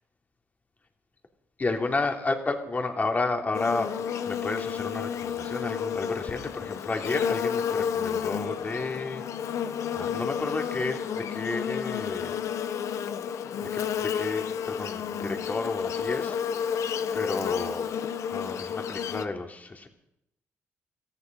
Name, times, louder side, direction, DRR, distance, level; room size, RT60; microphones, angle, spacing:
voice 1, 1.6-3.9 4.2-9.2 9.9-12.5 13.6-16.8 17.1-17.9 18.3-19.9, left 3 dB, 30° left, 4 dB, 3.2 m, -32 dB
Buzz, 3.5-19.2, left 8 dB, 75° left, 1.1 m, -31 dB
19.0 x 14.0 x 5.4 m, 0.80 s
cardioid pair, 80°, 5 cm